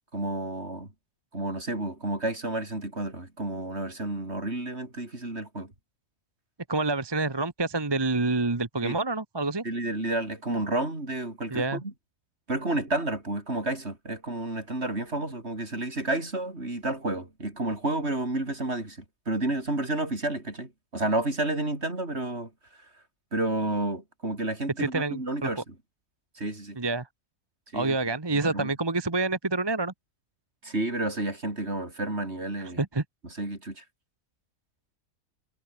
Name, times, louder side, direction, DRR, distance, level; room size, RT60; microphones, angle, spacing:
voice 1, 0.1-0.9 1.3-5.7 8.8-9.0 9.6-11.9 12.5-19.0 19.3-22.5 23.3-25.6 26.4-26.8 27.7-28.0 28.3-28.7 30.6-32.8 33.4-33.8, right 2 dB, 40° right, 5.4 m, -30 dB
voice 2, 6.7-9.6 11.5-11.8 24.8-25.5 26.8-27.1 27.7-29.9 32.8-33.0, right 3 dB, 20° right, 1.0 m, -27 dB
omnidirectional pair, 1.6 m